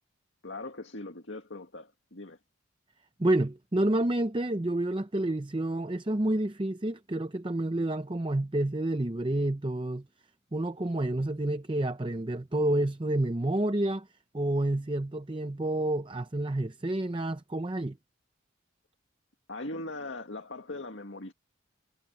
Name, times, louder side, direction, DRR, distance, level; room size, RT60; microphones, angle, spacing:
voice 1, 0.4-2.4 19.5-21.3, left 2 dB, 70° left, 2.0 m, -40 dB
voice 2, 3.2-10.0 10.5-14.1 14.3-18.0, right 1 dB, 25° right, 0.6 m, -29 dB
head